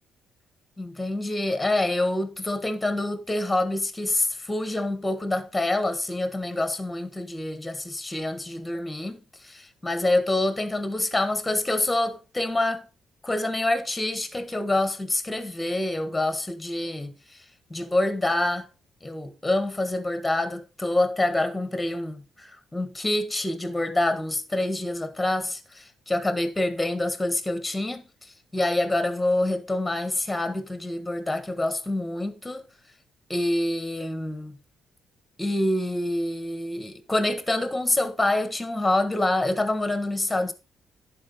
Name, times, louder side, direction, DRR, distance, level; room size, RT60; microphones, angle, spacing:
voice 1, 0.8-12.9 13.2-17.1 17.7-18.7 19.0-28.0 28.5-32.6 33.3-34.6 35.4-40.5, left 1 dB, 10° left, 1.3 m, -26 dB
10.5 x 4.5 x 4.1 m
cardioid pair, 90°, 0 cm